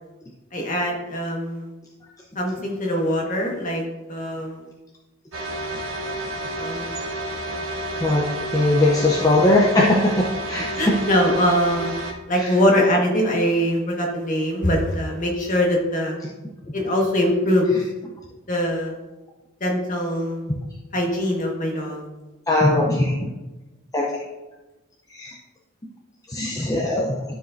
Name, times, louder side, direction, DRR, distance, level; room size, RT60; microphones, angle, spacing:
voice 1, 0.5-1.7 2.3-3.8 4.1-4.6 6.6-6.9 9.1-9.5 10.7-11.9 12.3-16.2 16.7-17.7 18.5-19.0 19.6-20.4 20.9-22.0, equal, 40° left, 0 dB, 1.5 m, -22 dB
sound 1, 5.3-12.1, right 1 dB, 75° right, 1.1 m, -30 dB
voice 2, 8.5-10.9 12.4-12.5 22.5-23.1 23.9-24.0 25.1-25.3 26.3-27.2, left 1 dB, 15° left, -3 dB, 0.6 m, -19 dB
12.5 x 4.9 x 2.6 m, 1.1 s
head